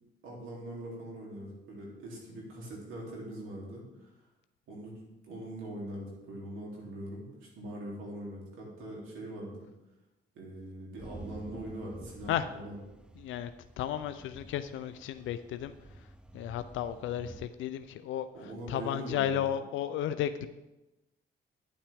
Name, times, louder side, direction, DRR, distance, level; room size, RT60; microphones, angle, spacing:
voice 1, 0.2-4.1 4.7-4.9 5.3-9.5 10.3-12.8 18.3-19.4, right 1 dB, 85° right, -3 dB, 3.1 m, -42 dB
sound 1, 11.0-17.5, right 1 dB, 5° right, 0.5 m, -50 dB
voice 2, 13.2-13.5 13.8-15.7 16.3-18.3 18.7-20.5, left 10 dB, 80° left, 11 dB, 0.4 m, -33 dB
9.8 x 8.6 x 3.5 m, 1.0 s
cardioid pair, 90°, 20 cm